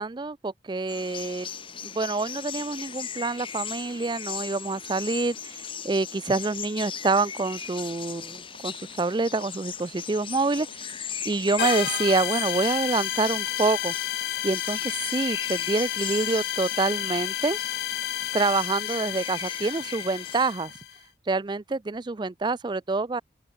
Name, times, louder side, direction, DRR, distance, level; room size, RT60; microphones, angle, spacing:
voice 1, 0.0-1.5 1.8-10.8 11.2-13.9 14.4-17.6 18.3-20.7 21.3-23.2, right 3 dB, 25° right, 0.4 m, -27 dB
sound 1, 0.9-20.5, left 7 dB, 30° left, 1.8 m, -38 dB
sound 2, 7.3-20.8, right 3 dB, 80° right, 3.2 m, -55 dB
sound 3, 11.6-21.0, left 13 dB, 60° left, 0.3 m, -31 dB
open air
head